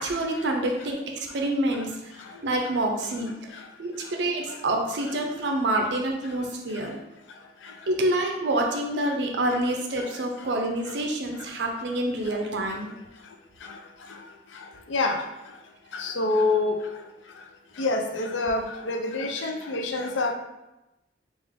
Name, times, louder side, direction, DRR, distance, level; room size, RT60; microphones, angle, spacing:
voice 1, 0.0-3.3 3.8-7.0 7.9-12.9 19.4-19.5, right 1 dB, 65° right, 2 dB, 0.4 m, -27 dB
voice 2, 14.9-15.2 15.9-16.8 17.8-20.3, left 2 dB, 75° left, 4 dB, 0.5 m, -26 dB
3.6 x 2.4 x 3.4 m, 0.94 s
head